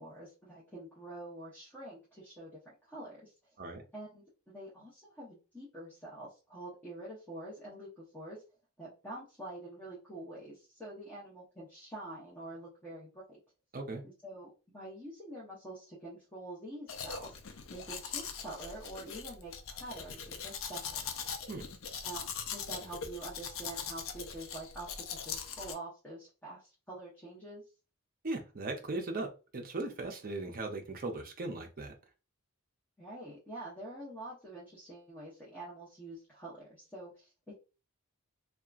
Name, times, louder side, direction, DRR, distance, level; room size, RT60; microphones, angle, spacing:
voice 1, 0.0-3.3 3.9-8.4 8.8-13.4 14.0-17.3 17.7-21.0 22.0-27.6 33.0-37.5, right 1 dB, 10° left, -7 dB, 0.9 m, -46 dB
Domestic sounds home sounds, 16.9-25.7, left 6 dB, 65° left, 0.4 m, -41 dB
voice 2, 28.2-31.9, right 2 dB, 40° right, 4 dB, 0.6 m, -38 dB
2.8 x 2.3 x 2.3 m, 0.32 s
head